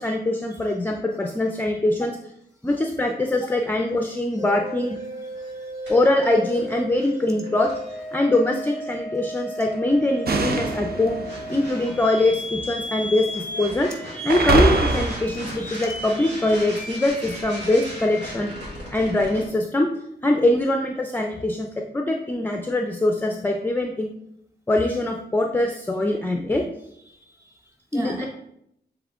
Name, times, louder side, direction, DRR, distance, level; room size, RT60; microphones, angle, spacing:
voice 1, 0.0-2.2 2.6-5.0 5.9-7.7 8.1-11.2 11.5-13.9 14.2-18.5 18.9-19.9 20.2-21.7 21.9-24.1 24.7-26.6 27.9-28.2, left 1 dB, 10° left, 3 dB, 0.4 m, -23 dB
sound 1, 4.4-19.4, equal, 80° right, 2.2 m, -34 dB
voice 2, 5.1-5.9 27.1-28.3, right 1 dB, 15° right, 1 dB, 1.2 m, -42 dB
sound 2, 10.2-12.7 13.3-13.8 14.3-16.2, right 3 dB, 60° right, 0.6 m, -25 dB
7.2 x 3.6 x 3.5 m, 0.76 s
wide cardioid pair, 165°, 18 cm